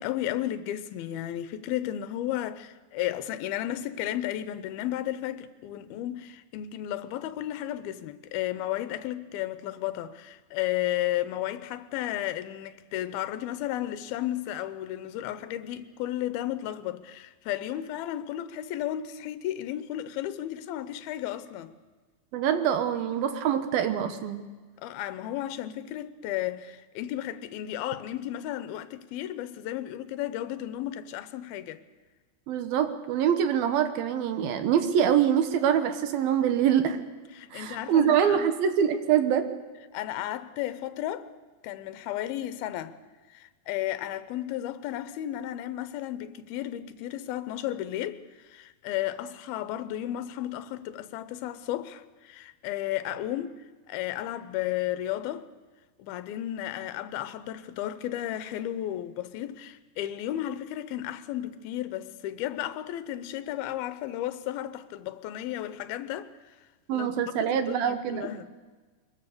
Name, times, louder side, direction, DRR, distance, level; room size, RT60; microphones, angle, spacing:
voice 1, 0.0-21.7 24.8-31.8 37.3-38.5 39.9-41.3 41.6-43.0 43.3-48.2 48.5-53.6 53.9-55.5 56.0-66.3 66.9-67.1 67.4-68.5, left 13 dB, 85° left, 2.8 m, -33 dB
voice 2, 22.3-24.5 32.5-37.0 37.5-39.5 66.9-68.3, right 9 dB, 75° right, 3.1 m, -25 dB
23.0 x 22.5 x 6.8 m
omnidirectional pair, 4.3 m